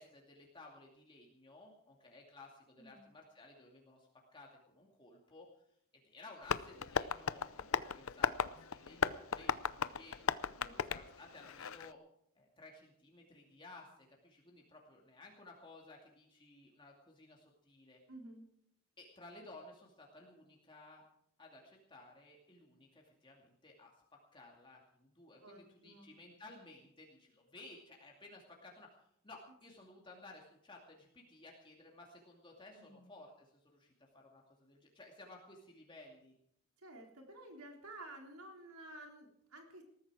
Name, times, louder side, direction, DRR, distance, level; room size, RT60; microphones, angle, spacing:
voice 1, 0.0-4.5 4.7-5.5 6.0-10.3 10.9-12.0 12.4-13.9 14.2-18.0 19.0-21.0 21.4-23.9 24.3-36.3, left 2 dB, 20° left, -1 dB, 2.4 m, -57 dB
Tap, 6.4-11.9, left 6 dB, 70° left, 0.6 m, -37 dB
voice 2, 10.6-10.9 18.1-18.5 25.4-26.1 29.7-29.9 32.8-33.1 36.8-39.8, right 1 dB, 85° right, 2 dB, 3.8 m, -53 dB
20.0 x 13.5 x 4.8 m, 0.70 s
head